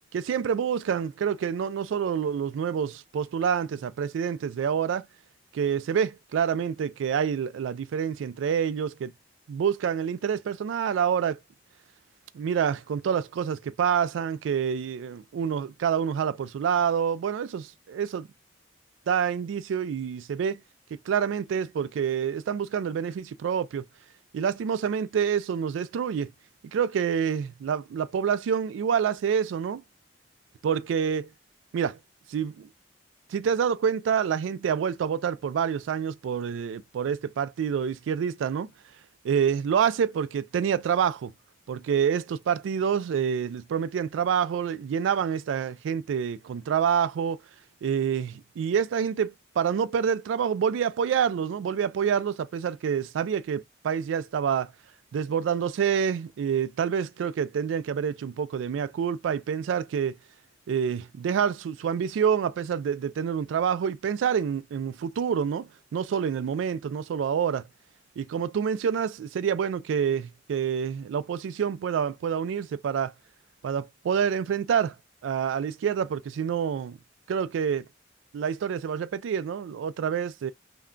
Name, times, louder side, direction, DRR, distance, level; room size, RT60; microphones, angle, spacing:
voice 1, 0.1-5.1 5.5-9.1 9.5-11.4 12.3-18.3 19.1-20.6 21.1-23.8 24.3-26.3 26.7-29.8 30.6-31.3 31.7-32.0 32.3-32.7 33.3-38.7 39.2-41.3 41.7-47.4 47.8-54.7 55.1-60.2 60.7-67.7 68.2-73.1 73.6-75.0 75.2-77.0 77.3-77.9 78.3-80.5, right 7 dB, 90° right, 0.3 m, -27 dB
2.2 x 2.2 x 3.7 m
head